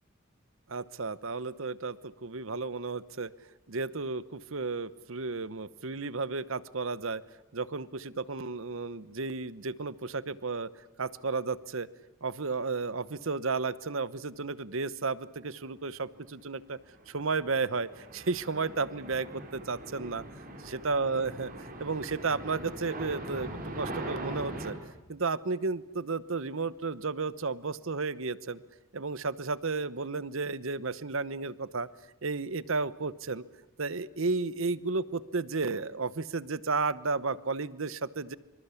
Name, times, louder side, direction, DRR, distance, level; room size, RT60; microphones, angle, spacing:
voice 1, 0.7-3.3 3.7-7.2 7.5-10.7 11.0-11.9 12.2-16.8 17.1-20.2 20.7-24.8 25.1-28.6 28.9-31.9 32.2-33.4 33.8-38.4, right 4 dB, 65° right, 17 dB, 1.0 m, -33 dB
sound 1, 16.9-24.7, right 1 dB, 40° right, 3.9 m, -41 dB
25.5 x 25.0 x 8.3 m, 1.0 s
head